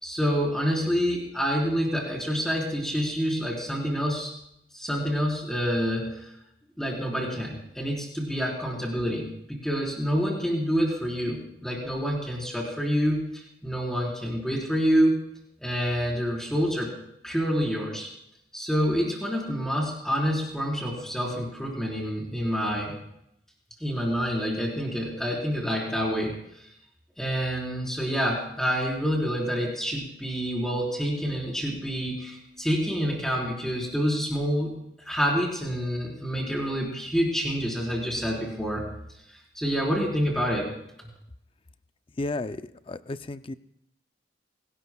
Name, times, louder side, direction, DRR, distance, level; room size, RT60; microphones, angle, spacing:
voice 1, 0.0-4.3 4.7-6.3 6.8-15.2 15.6-16.9 17.2-18.1 18.5-22.9 23.8-26.6 27.2-34.8 35.1-38.9 39.3-40.7, equal, 5° left, -3 dB, 4.3 m, -27 dB
voice 2, 42.2-43.5, left 2 dB, 30° left, 12 dB, 0.5 m, -33 dB
24.5 x 18.5 x 2.3 m, 0.77 s
head